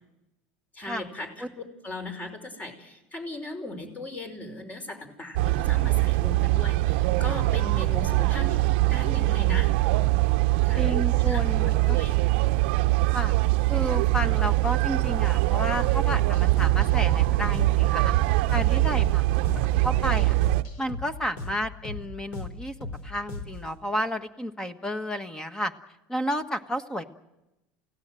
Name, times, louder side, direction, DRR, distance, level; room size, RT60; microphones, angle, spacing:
voice 1, 0.7-9.7 10.6-10.8 11.2-12.1, left 2 dB, 30° left, 6 dB, 5.5 m, -38 dB
sound 1, 5.4-20.6, right 19 dB, 80° right, 0.8 m, -23 dB
voice 2, 10.7-12.0 13.1-13.4 13.7-18.2 18.5-19.2 19.5-20.3 20.8-22.7 23.0-25.7 26.1-27.0, equal, 10° left, 9 dB, 1.5 m, -31 dB
sound 2, 16.1-23.7, left 3 dB, 70° left, 4.3 m, -38 dB
29.0 x 17.0 x 7.8 m, 0.96 s
supercardioid pair, 105°, 6 cm